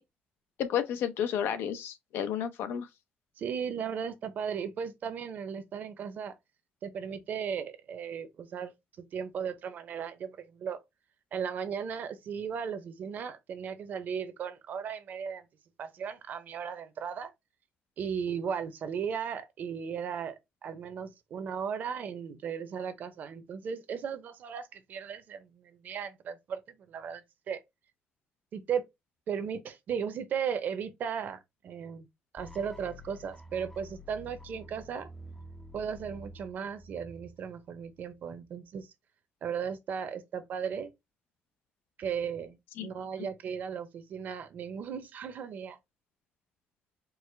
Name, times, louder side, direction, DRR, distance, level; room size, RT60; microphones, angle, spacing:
voice 1, 0.6-2.9 42.8-42.9, left 9 dB, 90° left, 0.6 m, -31 dB
voice 2, 3.4-6.3 6.8-10.8 11.3-15.4 15.8-17.3 18.0-27.6 28.5-28.8 29.3-32.1 32.3-35.1 35.7-38.9 39.4-40.9 42.0-42.6 42.8-45.8, right 7 dB, 55° right, 0.6 m, -36 dB
sound 1, 32.4-38.3, equal, 10° left, 0.4 m, -49 dB
4.6 x 2.1 x 3.2 m
cardioid pair, 150°, 4 cm